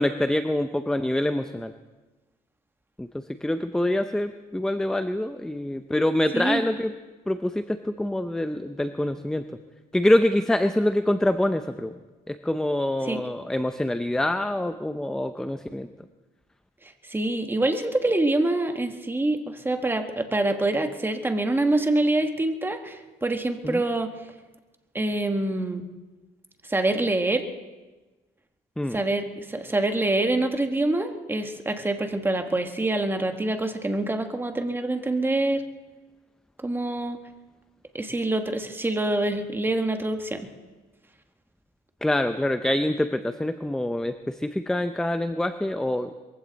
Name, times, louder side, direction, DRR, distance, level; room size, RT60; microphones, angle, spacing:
voice 1, 0.0-1.7 3.0-3.1 3.4-6.9 7.3-9.4 9.9-11.9 12.3-15.9 23.6-23.8 28.8-29.0 42.0-46.1, left 1 dB, 5° left, 10 dB, 0.6 m, -25 dB
voice 2, 17.1-24.1 24.9-25.8 26.7-27.5 28.9-35.6 36.6-37.2 37.9-40.5, right 2 dB, 10° right, 6 dB, 1.4 m, -25 dB
22.5 x 15.5 x 4.0 m, 1.2 s
cardioid pair, 110°, 17 cm